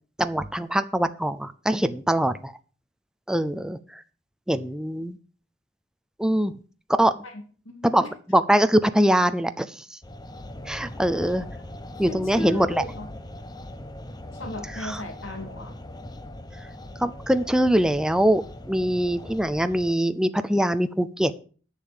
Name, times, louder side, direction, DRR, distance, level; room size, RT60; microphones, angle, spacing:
voice 1, 0.2-2.5 3.3-4.0 4.5-5.2 6.2-6.5 7.0-7.1 7.8-10.0 10.7-11.5 12.0-12.8 14.7-15.0 17.0-18.4 18.7-21.4, right 1 dB, 5° right, 11 dB, 0.5 m, -23 dB
voice 2, 7.7-8.1 12.1-13.1 14.4-15.7, left 2 dB, 80° left, 5 dB, 2.1 m, -36 dB
sound 1, 10.0-19.9, left 1 dB, 20° left, 0.9 m, -40 dB
10.5 x 6.8 x 7.3 m, 0.40 s
head